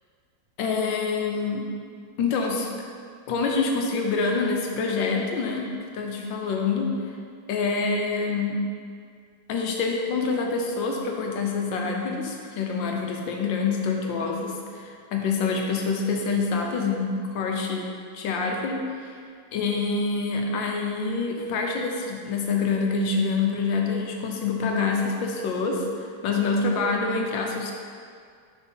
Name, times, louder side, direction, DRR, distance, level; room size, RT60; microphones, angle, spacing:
voice 1, 0.6-1.6 2.2-2.7 3.3-6.9 7.5-8.6 9.5-19.1 19.5-25.9 26.2-27.7, left 4 dB, 85° left, 1 dB, 1.5 m, -26 dB
6.2 x 4.3 x 5.7 m, 2.1 s
omnidirectional pair, 2.0 m